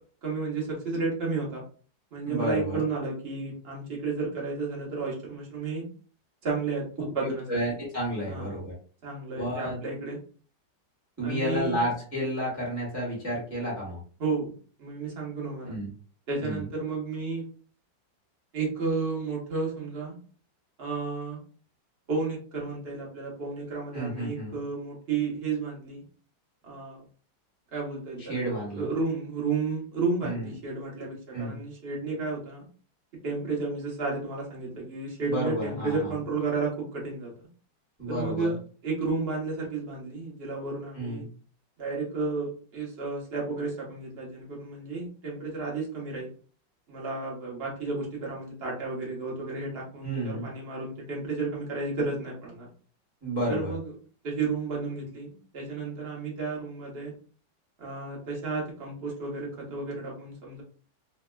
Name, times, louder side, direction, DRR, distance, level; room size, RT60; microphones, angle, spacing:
voice 1, 0.2-1.6 2.1-5.9 6.4-6.8 7.1-7.6 8.3-8.5 9.0-10.2 11.2-11.8 14.2-15.8 16.3-17.4 18.5-20.2 20.8-21.4 22.1-26.0 26.6-27.0 27.7-28.5 28.8-32.6 33.2-37.5 38.1-38.6 38.8-41.2 41.8-46.3 46.9-52.7 53.5-53.9 54.2-57.1 57.8-60.6, right 4 dB, 40° right, -3 dB, 1.1 m, -32 dB
voice 2, 2.2-2.8 7.2-8.7 9.3-9.8 11.2-14.0 15.6-15.9 16.4-16.6 23.9-24.6 28.2-28.9 30.2-30.5 31.3-31.6 35.3-36.1 38.0-38.5 40.9-41.3 50.0-50.5 53.2-53.7, equal, 10° right, -4 dB, 1.0 m, -31 dB
3.2 x 2.8 x 2.2 m, 0.41 s
omnidirectional pair, 2.1 m